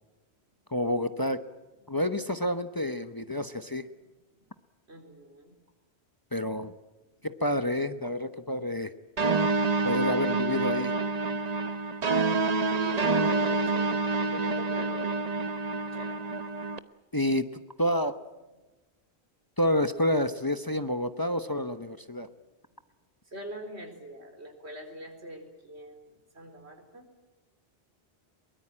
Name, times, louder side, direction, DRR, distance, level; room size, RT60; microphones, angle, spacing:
voice 1, 0.7-1.4 1.9-3.9 6.3-6.7 7.2-8.9 9.8-10.9 17.1-18.2 19.6-22.3, left 1 dB, 20° left, 10 dB, 0.9 m, -29 dB
voice 2, 4.9-5.5 12.7-15.2 15.9-16.2 23.3-27.1, right 1 dB, 85° right, 6 dB, 4.5 m, -43 dB
sound 1, 9.2-16.8, right 3 dB, 40° right, 1.0 m, -27 dB
23.0 x 22.0 x 8.8 m, 1.2 s
omnidirectional pair, 1.1 m